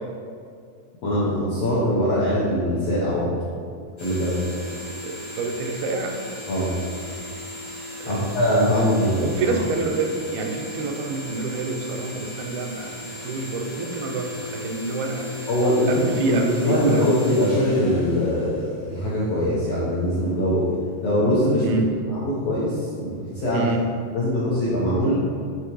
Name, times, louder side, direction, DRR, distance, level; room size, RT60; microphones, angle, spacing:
voice 1, 1.0-3.3 4.0-4.4 6.5-6.7 8.1-9.4 15.5-20.7 21.0-21.8 22.1-23.7 24.1-25.1, equal, 80° left, -8 dB, 1.4 m, -22 dB
sound 1, 4.0-19.2, left 2 dB, 55° left, 1.1 m, -37 dB
voice 2, 4.9-6.2 8.0-8.4 8.7-8.9 9.2-15.3 15.9-17.1 21.6-21.9 23.5-23.8, right 3 dB, 90° right, 3 dB, 2.5 m, -28 dB
9.2 x 3.5 x 3.0 m, 2.2 s
omnidirectional pair, 4.3 m